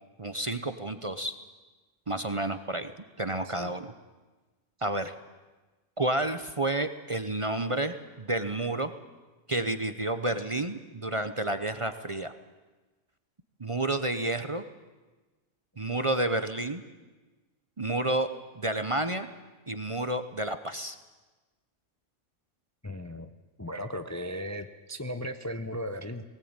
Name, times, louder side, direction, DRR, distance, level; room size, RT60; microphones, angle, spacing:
voice 1, 0.2-1.4 2.1-2.9 3.2-3.9 4.8-5.1 6.0-8.9 9.5-12.3 13.6-14.6 15.8-16.8 17.8-18.3 18.5-19.3 19.7-21.0, right 2 dB, 30° right, 10 dB, 0.8 m, -30 dB
voice 2, 3.4-3.8 22.8-23.3 23.6-26.2, equal, 15° left, 8 dB, 0.7 m, -36 dB
19.0 x 18.5 x 8.9 m, 1.2 s
omnidirectional pair, 1.3 m